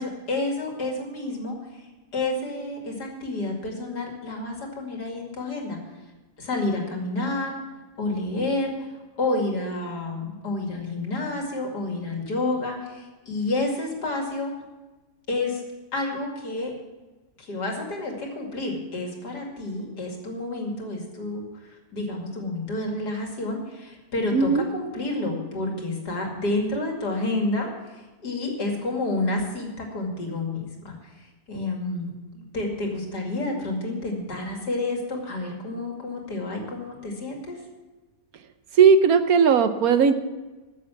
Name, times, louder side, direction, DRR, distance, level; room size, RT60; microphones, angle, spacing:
voice 1, 0.0-1.6 2.1-5.8 6.4-7.6 8.0-8.9 9.2-14.5 15.3-15.6 15.9-16.7 17.4-21.4 21.9-27.7 28.2-31.0 31.5-37.6, left 2 dB, 75° left, 1 dB, 3.0 m, -29 dB
voice 2, 24.3-24.6 38.8-40.1, right 6 dB, 65° right, 10 dB, 1.2 m, -17 dB
14.5 x 7.3 x 7.0 m, 1.2 s
omnidirectional pair, 1.7 m